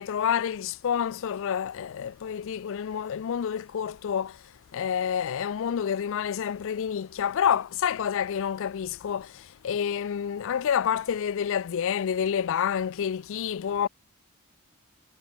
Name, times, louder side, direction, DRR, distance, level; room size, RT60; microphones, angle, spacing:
voice 1, 0.0-4.4 4.7-13.9, left 8 dB, 60° left, 0.4 m, -28 dB
head